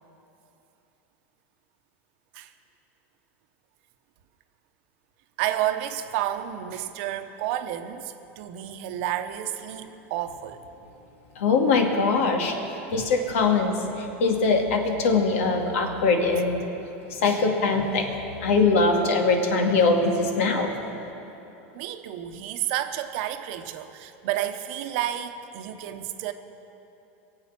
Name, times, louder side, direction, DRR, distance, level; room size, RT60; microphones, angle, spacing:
voice 1, 5.4-10.6 12.9-13.0 21.7-26.3, right 12 dB, 65° right, 8 dB, 1.0 m, -31 dB
voice 2, 11.4-12.5 12.9-16.6 17.1-18.1 18.4-20.8, left 4 dB, 85° left, 2 dB, 2.3 m, -22 dB
23.0 x 8.1 x 6.0 m, 3.0 s
supercardioid pair, 125°, 7 cm